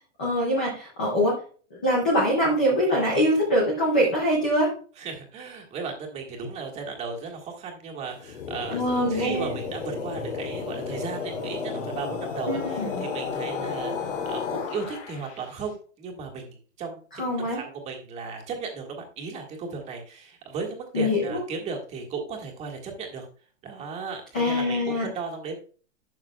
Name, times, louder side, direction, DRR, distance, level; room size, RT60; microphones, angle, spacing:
voice 1, 0.2-1.4 1.7-4.7 8.7-9.5 12.5-13.0 17.2-17.6 20.9-21.4 24.3-25.1, equal, 5° left, -4 dB, 0.3 m, -23 dB
voice 2, 5.0-8.8 9.1-17.0 17.4-23.3 23.6-25.6, right 5 dB, 15° right, 1 dB, 1.7 m, -35 dB
sound 1, 8.1-15.5, left 5 dB, 65° left, 3.1 m, -33 dB
12.0 x 7.6 x 2.3 m, 0.41 s
supercardioid pair, 170°, 39 cm